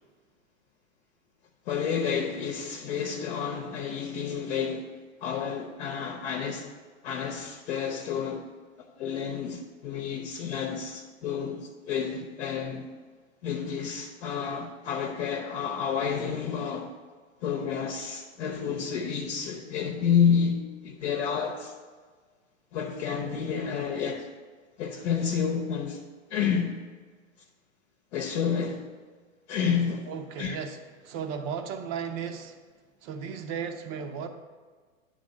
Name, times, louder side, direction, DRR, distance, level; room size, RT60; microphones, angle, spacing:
voice 1, 1.7-4.9 5.2-6.7 7.0-8.5 9.0-12.9 13.4-16.9 17.4-21.7 22.7-24.3 24.8-26.0 26.3-26.8 28.1-28.8 29.5-30.1 30.4-30.6, left 7 dB, 50° left, 1.0 m, -30 dB
voice 2, 30.1-32.6 33.0-34.3, right 7 dB, 35° right, 0.9 m, -35 dB
9.5 x 3.8 x 6.5 m
hypercardioid pair, 115°, 41 cm